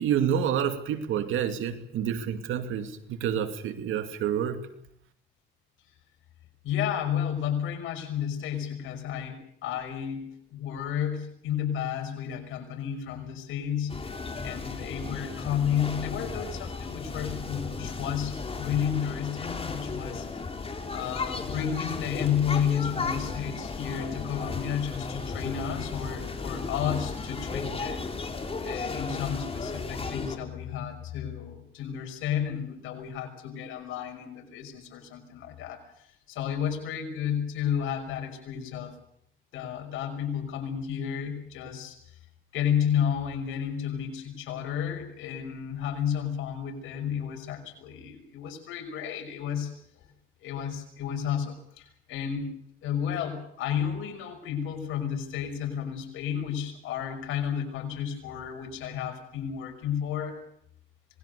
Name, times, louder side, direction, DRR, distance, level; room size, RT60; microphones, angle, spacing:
voice 1, 0.0-4.6, right 9 dB, 85° right, 2.7 m, -28 dB
voice 2, 6.6-14.1 14.4-20.3 20.9-28.1 28.6-35.8 36.3-38.9 39.5-42.0 42.5-49.7 50.4-52.6 52.8-60.4, left 8 dB, 90° left, 5.9 m, -32 dB
sound 1, 13.9-30.4, left 4 dB, 30° left, 4.0 m, -35 dB
26.0 x 20.5 x 6.8 m
cardioid pair, 90°, 20 cm